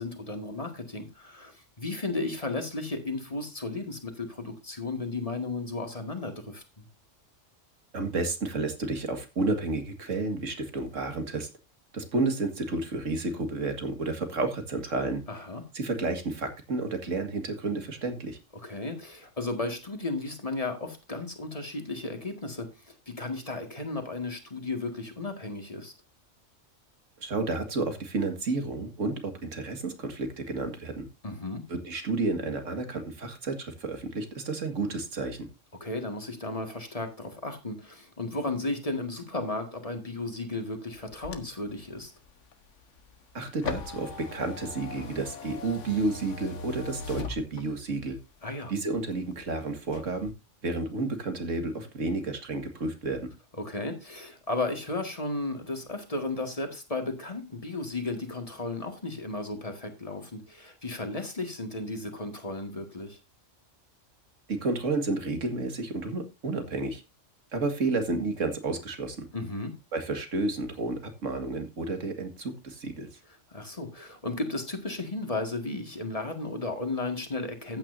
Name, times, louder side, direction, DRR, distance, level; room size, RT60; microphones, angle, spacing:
voice 1, 0.0-6.9 15.3-15.6 18.5-25.9 31.2-31.6 35.8-42.1 48.4-48.7 53.6-63.2 69.3-69.7 73.5-77.8, left 2 dB, 30° left, 5 dB, 2.0 m, -34 dB
voice 2, 7.9-11.5 11.9-15.2 15.7-18.4 27.2-31.1 31.7-35.5 43.3-48.2 48.7-50.3 50.6-53.3 64.5-67.0 67.5-69.3 69.9-73.1, right 3 dB, 85° right, 7 dB, 2.2 m, -31 dB
sound 1, 40.9-48.0 48.5-49.5 49.8-50.3, left 4 dB, 75° left, 1.5 m, -40 dB
14.0 x 9.0 x 2.7 m, 0.25 s
omnidirectional pair, 1.3 m